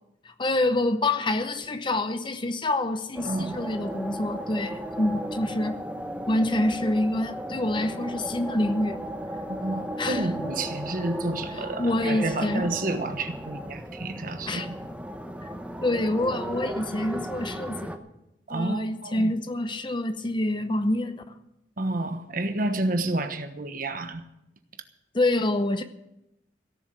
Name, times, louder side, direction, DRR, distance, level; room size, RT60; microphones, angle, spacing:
voice 1, 0.2-5.8 6.3-9.0 10.0-10.3 11.6-12.7 14.5-14.7 15.8-18.0 18.5-21.2 25.1-25.8, left 1 dB, 25° left, 0.7 m, -26 dB
sound 1, 3.1-18.0, equal, 5° right, 1.0 m, -35 dB
voice 2, 3.2-3.6 9.5-14.7 18.5-19.3 21.8-24.2, right 2 dB, 50° right, 1.2 m, -30 dB
17.0 x 7.2 x 8.9 m
head